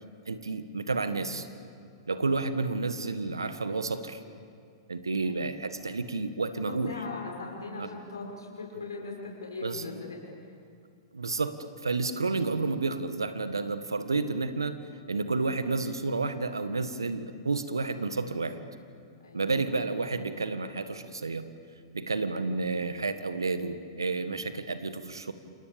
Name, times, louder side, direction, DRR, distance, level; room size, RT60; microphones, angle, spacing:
voice 1, 0.3-1.5 2.1-4.2 4.9-6.9 7.8-7.9 9.6-9.8 11.1-14.8 15.1-18.6 19.3-21.5 21.9-25.3, right 3 dB, 80° right, 10 dB, 1.8 m, -30 dB
voice 2, 6.8-10.6 19.2-19.8, left 3 dB, 75° left, -1 dB, 6.4 m, -40 dB
29.0 x 28.0 x 7.2 m, 2.3 s
figure-of-eight pair, 105°, 2 cm